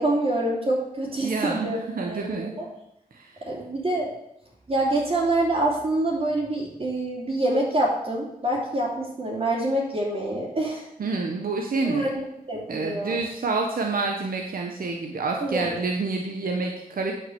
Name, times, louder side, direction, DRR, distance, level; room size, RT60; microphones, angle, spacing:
voice 1, 0.0-2.7 3.5-4.1 4.7-10.9 11.8-13.2 15.4-15.7, right 1 dB, 40° right, -7 dB, 3.0 m, -26 dB
voice 2, 1.2-2.5 3.1-3.4 11.0-12.1 12.7-17.1, right 3 dB, 70° right, 2 dB, 1.2 m, -28 dB
9.7 x 5.9 x 7.0 m, 0.83 s
wide cardioid pair, 90°, 15 cm